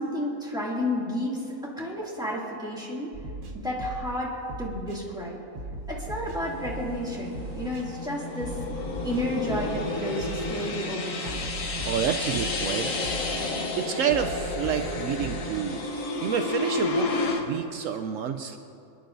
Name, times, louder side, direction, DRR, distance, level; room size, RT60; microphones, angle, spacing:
voice 1, 0.0-3.1 3.5-4.3 4.6-5.4 5.9-8.6 9.0-11.5 17.6-17.7, left 1 dB, 5° right, -6 dB, 2.4 m, -31 dB
sound 1, 3.1-4.2 4.5-5.0 5.5-7.0 7.3-7.8 8.4-9.9 10.2-10.7 11.2-12.7 13.0-13.5 14.1-15.5, right 1 dB, 90° right, 1.7 m, -38 dB
sound 2, 6.4-15.8, right 1 dB, 45° right, 2.9 m, -42 dB
sound 3, 7.3-17.4, left 3 dB, 70° left, 1.4 m, -31 dB
voice 2, 11.8-12.9 13.7-15.8 16.2-18.6, right 8 dB, 75° right, 6 dB, 0.9 m, -29 dB
27.0 x 10.5 x 2.6 m, 2.6 s
omnidirectional pair, 1.4 m